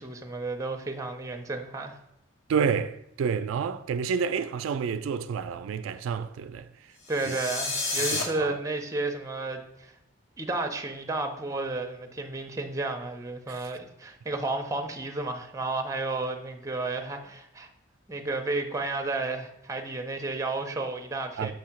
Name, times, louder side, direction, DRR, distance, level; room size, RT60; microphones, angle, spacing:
voice 1, 0.0-2.0 7.1-9.9 10.4-17.7 18.1-21.5, right 2 dB, 15° right, 0.6 m, -32 dB
voice 2, 2.5-6.7 7.3-7.4 8.1-8.6 13.5-13.6 21.4-21.5, right 6 dB, 80° right, 0.3 m, -29 dB
sound 1, 7.0-8.2, left 2 dB, 75° left, 1.3 m, -30 dB
6.7 x 2.8 x 5.7 m
head